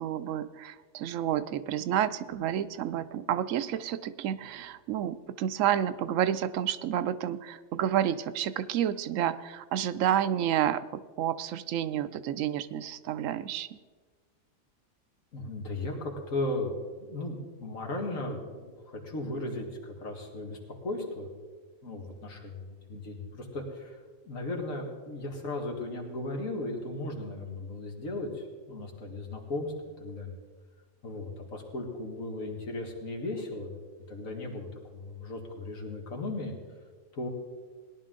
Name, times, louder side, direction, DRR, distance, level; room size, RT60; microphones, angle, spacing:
voice 1, 0.0-13.8, right 10 dB, 80° right, 13 dB, 0.9 m, -30 dB
voice 2, 15.3-16.7 17.1-21.3 21.8-22.6 22.9-24.0 24.2-30.4 31.0-33.7 34.1-36.5 37.1-37.3, left 2 dB, 90° left, 1 dB, 2.2 m, -36 dB
18.0 x 11.0 x 3.8 m, 1.4 s
omnidirectional pair, 1.4 m